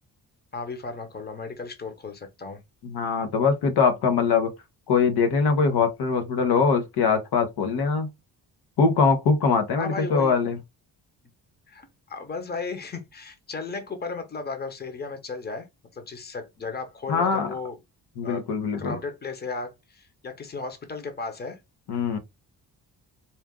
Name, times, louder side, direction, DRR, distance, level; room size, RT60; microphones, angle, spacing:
voice 1, 0.5-2.6 9.8-10.3 11.7-15.7 15.9-17.8 18.2-18.4 18.8-21.6, left 4 dB, 25° left, 0.9 m, -35 dB
voice 2, 2.8-4.5 4.9-8.1 8.8-10.6 17.1-17.5 18.2-19.0 21.9-22.2, left 5 dB, 90° left, 1.1 m, -22 dB
4.3 x 2.5 x 3.6 m
cardioid pair, 135°, 38 cm